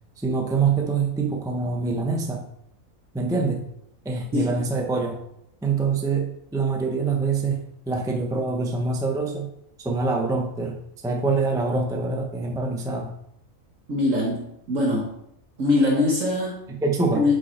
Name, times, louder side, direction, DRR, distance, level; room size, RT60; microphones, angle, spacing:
voice 1, 0.2-2.4 3.1-3.6 4.0-5.2 5.6-7.6 7.9-9.5 9.8-13.2 16.7-17.4, right 4 dB, 5° right, 2 dB, 0.7 m, -25 dB
voice 2, 13.9-15.1 15.6-16.6 17.1-17.4, left 2 dB, 65° right, -1 dB, 1.6 m, -22 dB
8.6 x 5.4 x 4.4 m, 0.75 s
omnidirectional pair, 1.5 m